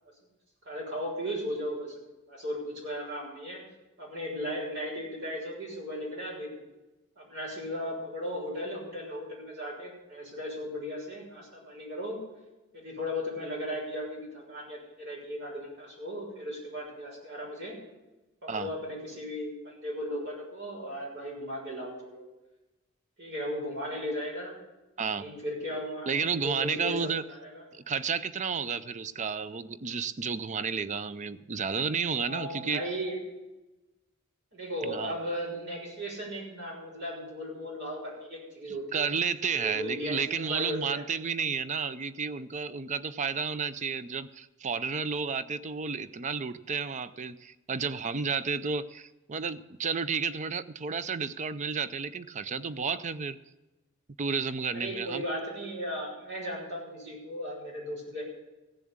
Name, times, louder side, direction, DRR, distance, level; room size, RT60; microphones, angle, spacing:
voice 1, 0.6-1.9 2.3-3.6 4.0-6.6 7.2-12.2 12.7-17.8 18.4-22.2 23.2-24.5 25.1-27.6 32.1-33.2 34.5-39.1 39.6-41.0 54.7-58.2, equal, 60° right, -3 dB, 6.3 m, -36 dB
voice 2, 26.1-27.2 27.7-32.8 34.8-35.1 38.9-53.4 54.2-55.2, right 5 dB, 35° right, 14 dB, 0.5 m, -32 dB
15.5 x 7.3 x 8.7 m, 1.0 s
head